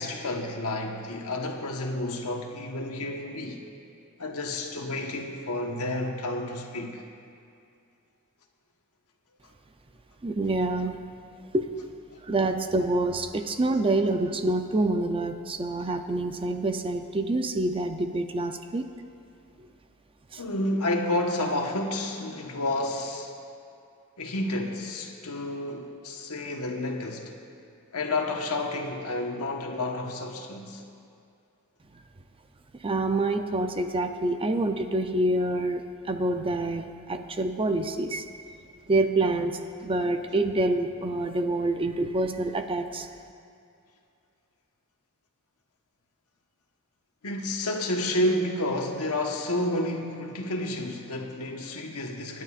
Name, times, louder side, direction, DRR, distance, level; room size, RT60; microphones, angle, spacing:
voice 1, 0.0-3.6 4.2-7.0 20.4-23.3 24.2-27.3 27.9-30.8 47.2-52.4, left 1 dB, 85° left, 2 dB, 1.3 m, -30 dB
voice 2, 10.2-11.0 11.5-11.7 12.2-18.9 19.6-19.7 20.3-20.4 31.9-32.0 32.7-38.3 38.9-43.1, right 2 dB, 25° right, 7 dB, 0.5 m, -27 dB
25.0 x 10.5 x 2.5 m, 2.4 s
head